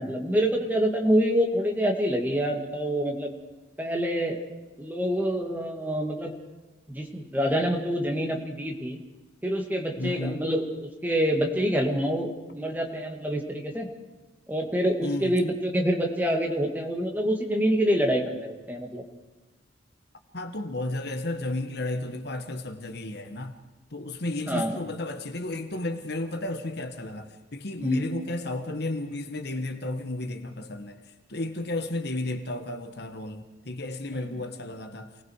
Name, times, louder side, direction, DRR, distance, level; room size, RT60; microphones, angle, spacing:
voice 1, 0.0-3.3 3.8-4.4 4.8-6.3 6.9-9.0 9.4-13.9 14.5-19.0 24.5-24.8 27.8-28.0, equal, 10° right, 2 dB, 2.5 m, -26 dB
voice 2, 10.0-10.5 15.0-15.4 20.3-23.5 23.9-31.0 31.3-35.1, left 2 dB, 60° left, 7 dB, 1.5 m, -33 dB
28.0 x 19.0 x 4.8 m, 1.1 s
head